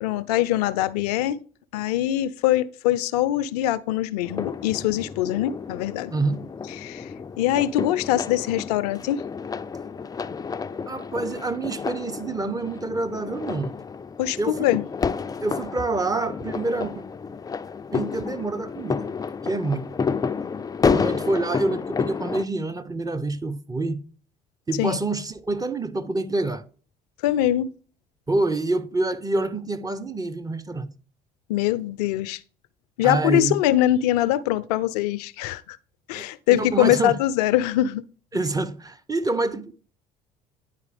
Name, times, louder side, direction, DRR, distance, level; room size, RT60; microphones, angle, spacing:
voice 1, 0.0-1.4 1.7-6.1 6.8-7.1 7.4-9.2 14.2-14.8 24.8-25.0 27.2-27.7 31.5-32.4 33.0-35.8 36.1-38.0, left 13 dB, 75° left, 0.5 m, -23 dB
sound 1, 4.2-22.5, left 5 dB, 20° left, 0.4 m, -30 dB
voice 2, 6.1-6.4 10.9-13.7 14.4-14.7 15.4-17.0 17.9-19.1 19.4-19.9 20.9-24.0 24.7-26.6 28.3-30.9 33.0-33.6 36.1-37.2 38.3-39.7, right 2 dB, 20° right, 0.7 m, -27 dB
9.7 x 4.7 x 3.3 m
hypercardioid pair, 60°, 20 cm